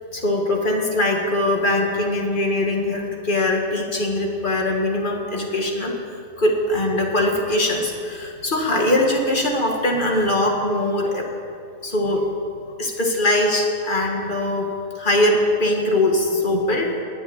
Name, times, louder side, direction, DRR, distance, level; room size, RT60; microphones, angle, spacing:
voice 1, 0.1-5.9 6.4-11.3 11.8-12.2 12.8-14.7 14.9-16.9, left 1 dB, 25° left, 0 dB, 1.2 m, -21 dB
20.5 x 7.8 x 9.1 m, 2.5 s
omnidirectional pair, 3.6 m